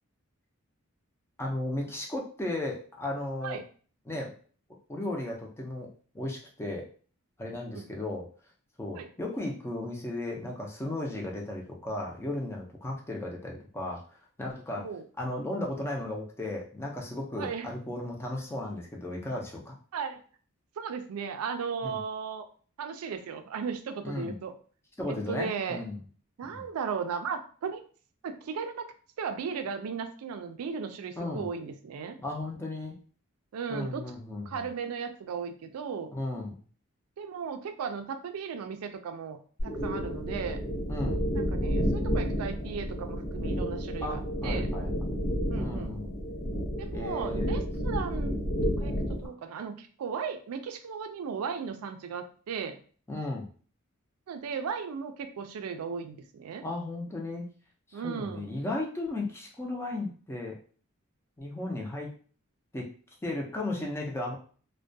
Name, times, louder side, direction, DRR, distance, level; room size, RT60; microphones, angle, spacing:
voice 1, 1.4-3.6 4.1-4.4 4.9-5.9 6.1-6.9 7.4-8.3 8.8-14.9 15.2-19.7 21.8-22.0 24.0-24.3 25.0-26.0 26.4-26.6 31.2-31.5 32.2-33.0 33.7-34.7 36.1-36.6 40.9-41.2 44.0-44.9 45.5-46.1 46.9-47.5 48.2-48.4 53.1-53.5 56.6-57.5 57.9-60.6 61.4-62.1 62.7-62.9 63.2-64.4, left 2 dB, 10° left, -1 dB, 0.4 m, -35 dB
voice 2, 17.4-17.7 19.9-20.2 20.8-22.5 22.8-24.5 25.1-25.8 26.4-27.8 28.2-28.9 29.2-32.2 33.5-34.1 34.5-36.1 37.2-39.4 39.6-40.6 41.3-44.7 45.5-45.9 46.8-48.4 48.8-52.8 54.3-56.6 57.9-58.5, right 6 dB, 85° right, 7 dB, 0.3 m, -36 dB
sound 1, 39.6-49.3, equal, 90° left, 0.7 m, -31 dB
2.2 x 2.1 x 2.6 m, 0.42 s
head